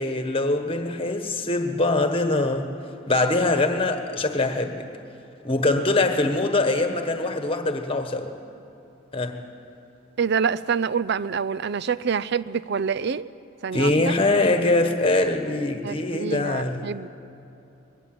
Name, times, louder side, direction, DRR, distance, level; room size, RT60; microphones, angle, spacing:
voice 1, 0.0-2.7 3.1-4.9 5.4-8.3 9.1-9.4 13.7-16.9, left 2 dB, 25° left, 6 dB, 1.3 m, -23 dB
voice 2, 10.2-13.3 13.6-14.1 15.8-17.1, right 6 dB, 55° right, 16 dB, 0.4 m, -26 dB
21.0 x 18.0 x 7.8 m, 2.8 s
head